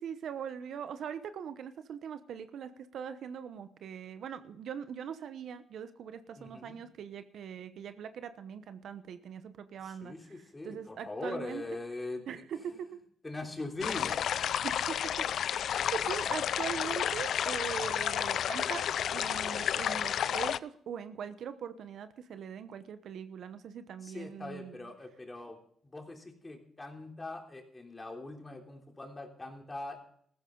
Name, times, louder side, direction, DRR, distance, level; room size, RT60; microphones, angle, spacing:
voice 1, 0.0-10.1 10.6-11.6 12.3-13.0 14.6-15.2 15.9-18.8 19.1-24.9, right 8 dB, 65° right, 11 dB, 0.9 m, -41 dB
voice 2, 6.4-6.8 9.8-12.2 13.2-14.3 24.0-25.6 25.9-30.0, left 2 dB, 20° left, 2 dB, 3.4 m, -41 dB
sound 1, 13.8-20.6, left 9 dB, 65° left, 0.4 m, -31 dB
15.0 x 13.5 x 3.8 m, 0.64 s
cardioid pair, 90°, 0 cm